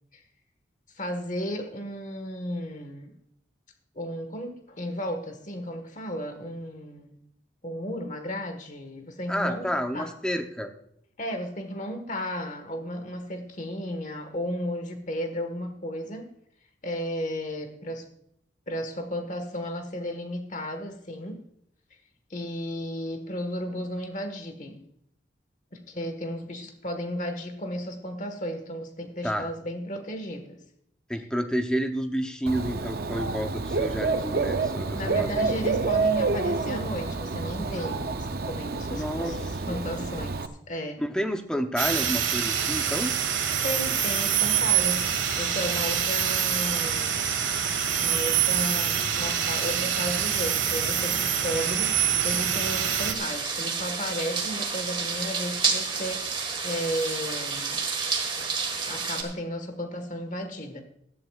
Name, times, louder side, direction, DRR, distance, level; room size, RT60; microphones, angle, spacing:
voice 1, 1.0-3.1 3.9-7.2 7.6-9.7 9.9-10.1 11.2-16.3 16.8-18.1 18.7-21.4 22.3-24.8 25.7-30.6 34.9-41.0 43.6-45.1 45.3-47.2 48.0-57.8 58.9-60.8, equal, 40° left, 6 dB, 1.4 m, -34 dB
voice 2, 9.3-10.7 29.2-29.5 31.1-35.5 38.9-39.4 39.7-39.8 41.0-43.1, equal, 5° left, 6 dB, 0.7 m, -30 dB
Dog / Bird, 32.5-40.5, right 3 dB, 50° right, 0.6 m, -28 dB
sound 1, 41.8-53.1, right 8 dB, 85° right, 1.6 m, -25 dB
sound 2, 53.1-59.2, right 5 dB, 25° right, 1.7 m, -30 dB
18.0 x 12.5 x 2.4 m, 0.74 s
head